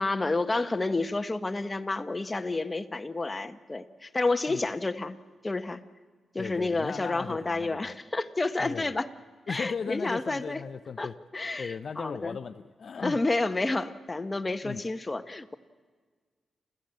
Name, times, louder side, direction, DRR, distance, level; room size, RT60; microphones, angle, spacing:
voice 1, 0.0-5.2 5.4-5.8 6.3-9.1 9.5-10.6 11.0-12.4 13.0-15.5, left 2 dB, 25° left, 9 dB, 1.3 m, -30 dB
voice 2, 6.4-7.9 8.6-8.9 9.5-11.1 11.6-13.2 14.6-14.8, left 6 dB, 60° left, 10 dB, 0.7 m, -37 dB
29.0 x 14.5 x 7.8 m, 1.5 s
cardioid pair, 55°, 0 cm